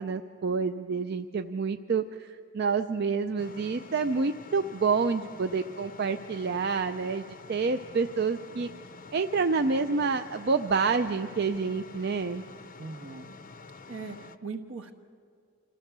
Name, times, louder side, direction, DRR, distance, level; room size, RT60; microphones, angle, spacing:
voice 1, 0.0-7.2 7.5-8.7 9.1-12.4, right 4 dB, 50° right, 8 dB, 0.4 m, -28 dB
sound 1, 3.4-14.4, left 4 dB, 40° left, 0.6 m, -48 dB
voice 2, 12.8-13.3 13.9-14.9, right 4 dB, 70° right, 7 dB, 1.3 m, -39 dB
26.0 x 15.0 x 6.8 m, 2.2 s
head